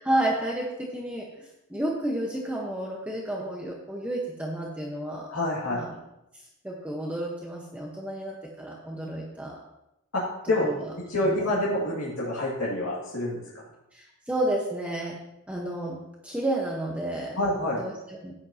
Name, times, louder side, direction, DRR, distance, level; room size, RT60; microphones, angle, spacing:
voice 1, 0.0-5.3 5.7-5.9 6.6-9.6 10.6-10.9 11.2-11.4 13.9-15.2 15.5-16.0 16.2-17.4 17.8-18.3, right 1 dB, 5° right, -3 dB, 1.2 m, -31 dB
voice 2, 5.3-5.8 10.1-10.2 10.5-10.7 11.1-13.4 17.4-17.8, left 1 dB, 75° left, -7 dB, 2.4 m, -27 dB
15.5 x 9.7 x 2.9 m, 0.90 s
head